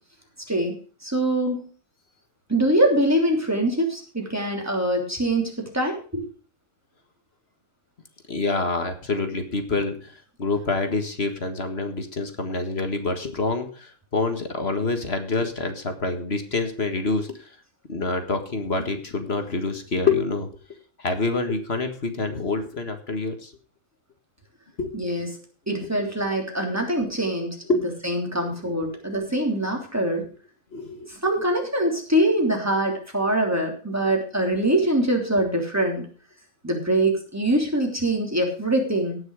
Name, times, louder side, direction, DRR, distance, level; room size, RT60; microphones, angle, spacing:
voice 1, 1.0-1.7 2.5-6.3 24.9-25.3 25.7-27.5 28.0-30.3 31.1-36.0 36.6-39.2, right 1 dB, 10° right, 1 dB, 3.3 m, -23 dB
voice 2, 8.3-10.1 10.4-17.4 17.9-20.5 21.0-23.5 24.8-24.9 25.8-25.9 27.7-27.8 30.7-31.1, left 3 dB, 45° left, 7 dB, 1.9 m, -26 dB
18.0 x 6.3 x 4.8 m, 0.39 s
omnidirectional pair, 1.5 m